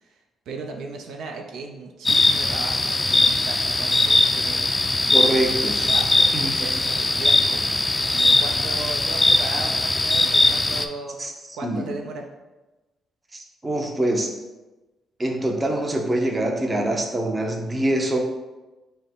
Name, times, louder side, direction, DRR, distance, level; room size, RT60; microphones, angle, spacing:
voice 1, 0.5-4.7 5.0-5.3 5.9-11.2 11.5-12.3, right 3 dB, 75° right, 3 dB, 0.5 m, -36 dB
sound 1, 2.1-10.9, left 2 dB, 20° left, 0.3 m, -20 dB
voice 2, 5.1-5.9 6.3-6.7 11.2-11.3 11.6-11.9 13.3-14.3 15.2-18.2, right 1 dB, 20° right, 2 dB, 0.7 m, -24 dB
5.3 x 2.1 x 4.5 m, 1.1 s
cardioid pair, 90°, 0 cm